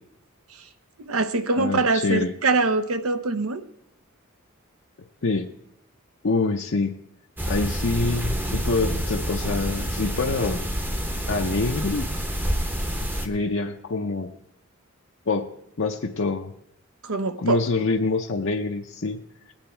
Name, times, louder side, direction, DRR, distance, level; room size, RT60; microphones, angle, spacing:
voice 1, 1.0-3.6 17.0-17.6, right 3 dB, 80° right, 9 dB, 0.9 m, -23 dB
voice 2, 1.5-2.3 5.2-5.5 6.2-6.9 7.5-10.6 11.3-12.1 13.2-14.3 15.3-15.5 15.8-16.5 17.4-19.2, left 3 dB, 60° left, 1 dB, 0.6 m, -25 dB
sound 1, 7.4-13.3, equal, 10° right, 0.8 m, -28 dB
18.5 x 8.8 x 4.5 m, 0.78 s
head